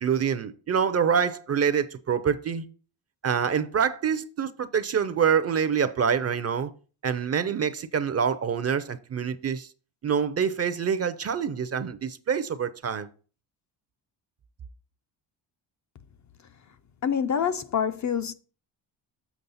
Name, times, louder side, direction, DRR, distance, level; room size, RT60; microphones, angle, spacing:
voice 1, 0.0-2.6 3.2-6.7 7.0-9.7 10.0-13.1, right 7 dB, 35° right, 0.4 m, -26 dB
voice 2, 17.0-18.3, left 7 dB, 40° left, 0.4 m, -26 dB
7.1 x 6.1 x 4.0 m
cardioid pair, 145°, 47 cm